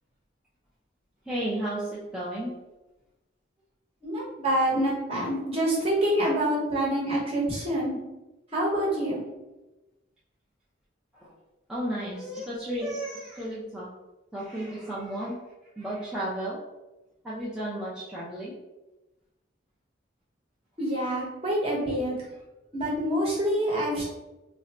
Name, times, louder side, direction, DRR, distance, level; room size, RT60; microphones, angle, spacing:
voice 1, 1.3-2.5 11.2-11.3 11.7-13.9 14.3-15.4 15.8-16.6 17.2-18.5, right 1 dB, 5° right, -9 dB, 0.4 m, -33 dB
voice 2, 4.0-8.0 8.5-9.2 20.8-22.3 22.7-24.0, right 1 dB, 30° right, -5 dB, 1.0 m, -26 dB
2.5 x 2.1 x 4.0 m, 1.0 s
head